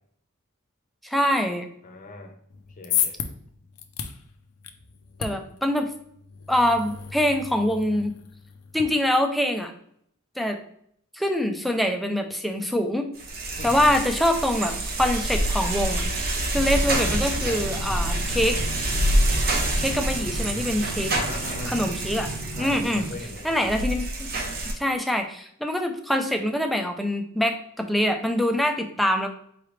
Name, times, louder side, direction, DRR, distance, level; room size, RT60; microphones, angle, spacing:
voice 1, 1.0-1.7 5.2-5.9 6.5-8.1 8.7-9.7 10.4-10.6 11.1-13.1 13.6-16.0 16.5-18.6 19.8-21.1 21.6-22.3 22.6-23.1 23.4-24.3 24.7-29.3, left 1 dB, ahead, 4 dB, 0.4 m, -24 dB
voice 2, 1.8-2.3 2.8-3.2 13.6-13.9 21.1-21.8 22.6-23.7, left 2 dB, 35° left, 4 dB, 0.7 m, -39 dB
sound 1, 2.5-8.8, left 9 dB, 85° left, 0.5 m, -34 dB
sound 2, 13.2-24.7, right 1 dB, 45° right, 0.8 m, -27 dB
sound 3, 16.5-23.1, right 1 dB, 80° right, 0.7 m, -37 dB
4.7 x 3.3 x 3.1 m, 0.67 s
head